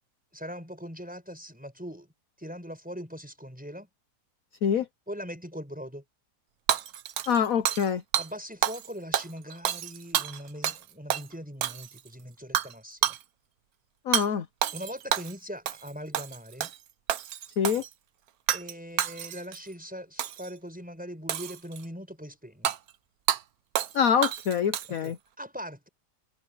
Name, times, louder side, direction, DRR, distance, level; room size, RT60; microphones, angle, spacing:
voice 1, 0.3-2.1 2.4-3.9 5.1-6.0 7.2-7.3 8.2-13.2 14.7-16.7 18.5-22.7 24.9-25.9, equal, 5° right, 5.6 m, -41 dB
Hammer / Shatter, 6.7-8.3 8.6-8.9 9.1-10.8 11.1-11.3 11.6-12.1 12.6-12.7 13.0-13.2 14.1-14.3 14.6-15.4 15.7-15.9 16.1-16.8 17.1-17.9 18.5-18.7 19.0-19.6 20.2-20.5 21.3-21.9 22.7-22.8 23.3-23.4 23.8-24.0 24.2-25.1, right 10 dB, 65° right, 1.2 m, -29 dB
voice 2, 7.3-8.0 14.0-14.5 17.6-17.8 23.9-25.2, left 7 dB, 60° left, 1.2 m, -25 dB
omnidirectional pair, 1.8 m